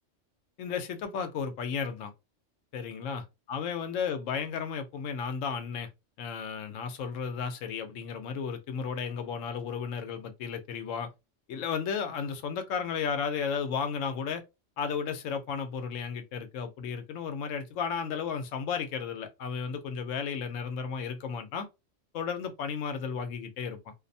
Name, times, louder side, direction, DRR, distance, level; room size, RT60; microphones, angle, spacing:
voice 1, 0.6-2.1 2.7-5.9 6.2-11.1 11.5-14.4 14.8-21.7 22.1-23.9, left 6 dB, 80° left, 0.9 m, -34 dB
2.6 x 2.0 x 2.6 m
omnidirectional pair, 1.3 m